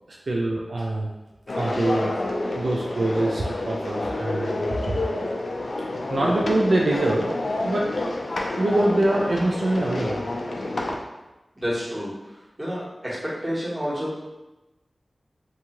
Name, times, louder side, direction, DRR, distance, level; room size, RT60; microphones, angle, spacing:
voice 1, 0.3-1.1 1.6-2.1 2.5-5.0 6.1-7.3 7.6-7.9 8.6-10.2 10.8-10.9, right 1 dB, 80° right, -2 dB, 0.3 m, -24 dB
sound 1, 1.5-11.0, left 2 dB, 80° left, 0.3 m, -28 dB
voice 2, 6.1-6.5 11.6-12.1 12.6-14.2, equal, 30° right, -9 dB, 1.3 m, -29 dB
2.6 x 2.4 x 2.9 m, 1.0 s
wide cardioid pair, 50°, 0 cm